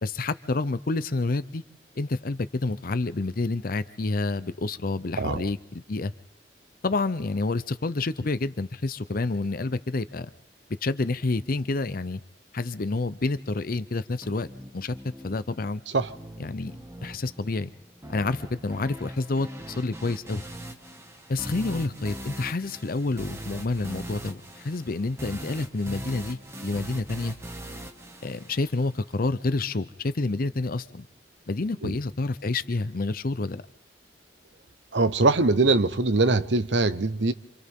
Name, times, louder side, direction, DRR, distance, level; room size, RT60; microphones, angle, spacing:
voice 1, 0.0-1.6 2.0-6.1 6.8-10.3 10.8-12.2 12.5-14.5 14.7-15.0 15.2-15.8 16.4-16.8 17.0-17.7 18.1-20.4 21.3-27.3 28.2-31.1 31.5-33.6, left 3 dB, 55° left, 0.7 m, -28 dB
voice 2, 5.2-5.5 15.9-16.1 31.8-32.0 34.9-37.3, right 3 dB, 80° right, 1.0 m, -22 dB
sound 1, 14.2-29.2, right 1 dB, 15° right, 1.9 m, -41 dB
27.5 x 27.5 x 3.7 m
head